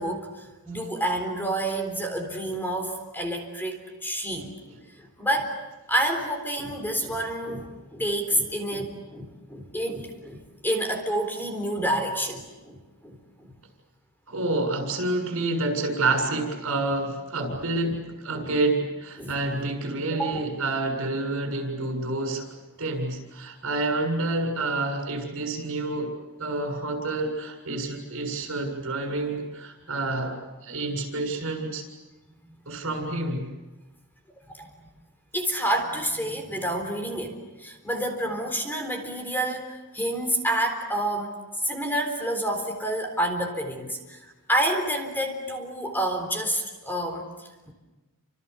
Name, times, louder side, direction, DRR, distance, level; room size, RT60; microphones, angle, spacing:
voice 1, 0.0-4.5 5.0-5.6 5.9-13.5 17.4-17.6 17.8-18.0 18.4-18.5 19.2-19.7 19.9-20.4 32.8-32.9 34.5-34.7 35.3-41.3 41.6-47.3 47.7-47.8, right 1 dB, 10° left, 4 dB, 3.9 m, -29 dB
voice 2, 14.3-22.5 22.8-26.1 26.4-30.4 30.6-31.9 32.7-33.5, right 2 dB, 65° right, 3 dB, 7.3 m, -28 dB
29.5 x 27.0 x 7.1 m, 1.1 s
head